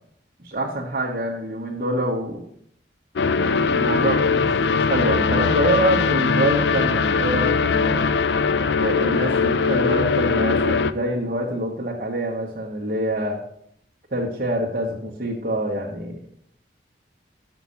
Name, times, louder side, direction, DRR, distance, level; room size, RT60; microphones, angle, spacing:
voice 1, 0.4-2.4 3.5-4.5 4.7-8.0 8.8-13.4 14.1-16.3, right 1 dB, 50° right, -4 dB, 1.3 m, -26 dB
sound 1, 3.2-10.9, left 5 dB, 70° left, 0.4 m, -21 dB
6.3 x 5.9 x 6.9 m, 0.69 s
head